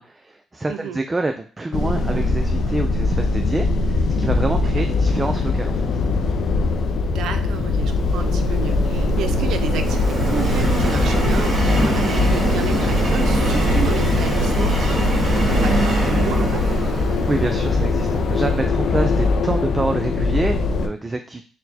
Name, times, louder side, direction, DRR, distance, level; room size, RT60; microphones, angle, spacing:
voice 1, 0.0-5.8 17.3-21.4, right 2 dB, 20° right, 5 dB, 0.3 m, -26 dB
voice 2, 0.7-1.0 4.5-4.9 7.1-15.1 15.4-16.7, right 7 dB, 75° right, 8 dB, 0.5 m, -32 dB
sound 1, 1.7-20.9, left 3 dB, 65° left, 0.4 m, -21 dB
Subway metro underground, 7.2-18.5, right 3 dB, 45° right, 1.8 m, -24 dB
4.2 x 2.1 x 4.1 m, 0.41 s
cardioid pair, 90°, 0 cm